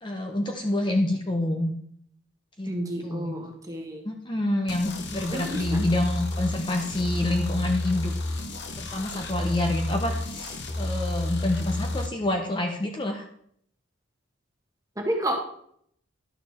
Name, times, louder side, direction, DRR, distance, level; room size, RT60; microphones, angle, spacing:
voice 1, 0.0-1.7 2.6-2.7 3.0-3.3 4.0-8.1 8.8-13.3, left 1 dB, 25° left, 3 dB, 0.8 m, -27 dB
voice 2, 2.7-4.0 5.3-5.6 15.0-15.4, right 1 dB, 15° right, 2 dB, 1.5 m, -30 dB
sound 1, 4.7-12.1, left 2 dB, 55° left, 1.1 m, -31 dB
11.5 x 6.8 x 4.3 m, 0.67 s
head